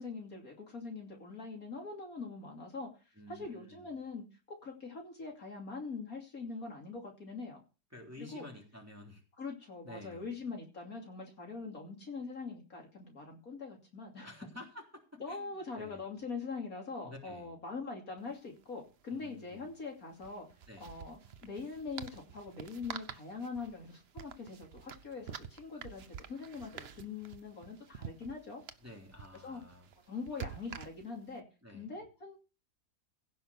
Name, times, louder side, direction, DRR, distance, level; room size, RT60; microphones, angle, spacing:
voice 1, 0.0-7.6 8.2-8.5 9.4-14.3 15.2-20.5 20.8-28.6 29.4-29.6 30.1-31.4 31.7-32.4, left 4 dB, 60° left, 1 dB, 3.2 m, -43 dB
voice 2, 3.2-3.9 7.9-9.2 9.8-10.2 14.2-14.8 15.3-16.0 17.0-17.5 19.1-19.6 20.7-20.9 28.8-29.9 31.6-31.9, left 1 dB, 10° right, 0 dB, 3.4 m, -50 dB
sound 1, 18.2-18.3 18.5-18.6 20.1-31.3, right 8 dB, 50° right, 0.9 m, -48 dB
16.0 x 5.7 x 6.9 m, 0.34 s
omnidirectional pair, 1.7 m